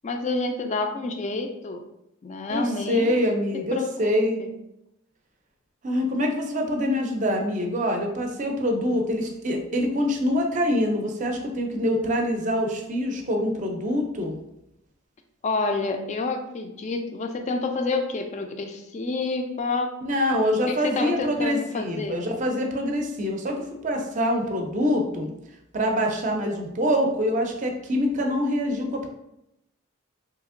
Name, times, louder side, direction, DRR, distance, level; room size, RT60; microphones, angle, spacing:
voice 1, 0.0-1.8 2.2-3.2 3.7-4.5 15.4-19.9 20.7-22.2, left 3 dB, 35° left, 5 dB, 0.3 m, -28 dB
voice 2, 2.5-4.4 5.8-14.4 20.0-25.3 25.7-29.1, equal, 35° right, 3 dB, 0.5 m, -25 dB
3.4 x 2.8 x 2.5 m, 0.84 s
head